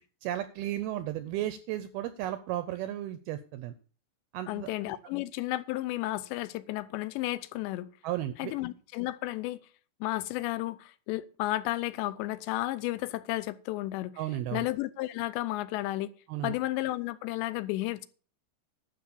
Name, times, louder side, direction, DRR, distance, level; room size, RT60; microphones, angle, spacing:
voice 1, 0.0-3.7 4.3-4.7 8.0-8.5 14.2-14.7 16.3-16.6, right 13 dB, 85° right, 2.2 m, -34 dB
voice 2, 4.5-7.9 8.4-9.6 10.0-14.1 14.5-16.1 16.4-18.1, left 17 dB, 85° left, 2.9 m, -33 dB
12.0 x 6.1 x 6.9 m
omnidirectional pair, 5.1 m